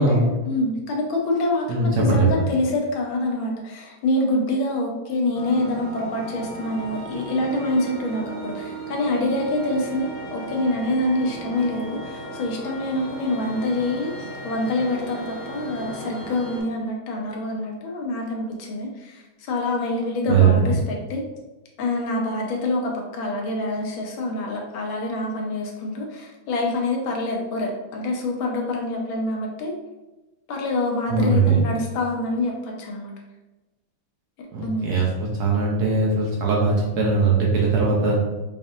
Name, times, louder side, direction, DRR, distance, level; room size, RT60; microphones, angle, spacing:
voice 1, 0.0-21.2 21.8-29.7 30.5-33.1 34.4-35.0, left 2 dB, 85° left, 0 dB, 1.5 m, -26 dB
voice 2, 1.7-2.3 20.3-20.6 31.1-31.6 34.5-38.2, right 4 dB, 65° right, -3 dB, 1.1 m, -20 dB
sound 1, 5.3-16.6, right 1 dB, 35° left, 0.9 m, -36 dB
5.1 x 2.4 x 2.6 m, 1.1 s
omnidirectional pair, 2.2 m